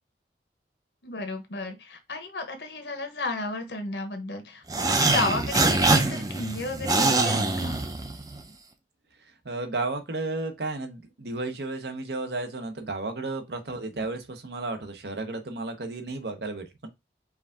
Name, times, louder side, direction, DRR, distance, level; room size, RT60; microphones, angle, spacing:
voice 1, 1.0-4.6 4.9-7.8 14.0-14.1, left 2 dB, 70° left, 1.1 m, -33 dB
sound 1, 4.7-8.4, right 3 dB, 20° right, 0.5 m, -24 dB
voice 2, 9.4-16.9, right 2 dB, 70° right, 0.9 m, -33 dB
4.7 x 2.6 x 3.6 m
head